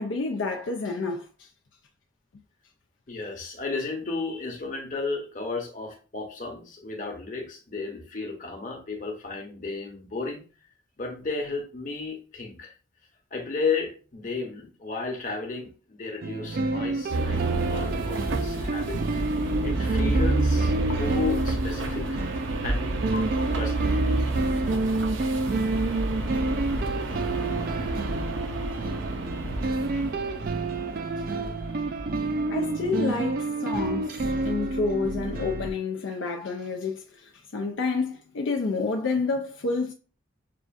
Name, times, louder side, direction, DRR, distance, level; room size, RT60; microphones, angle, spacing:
voice 1, 0.0-1.5 32.5-39.9, left 4 dB, 70° left, 0.4 m, -29 dB
voice 2, 3.1-10.4 11.0-12.7 13.3-19.0 19.6-22.2 22.6-22.8 23.1-24.0 28.6-28.7 29.9-30.1 31.6-32.4, left 4 dB, 40° left, 1.0 m, -33 dB
sound 1, 16.2-35.7, right 2 dB, 45° right, 0.4 m, -29 dB
sound 2, 17.1-32.3, right 2 dB, 75° right, 0.7 m, -29 dB
6.5 x 2.4 x 2.5 m
head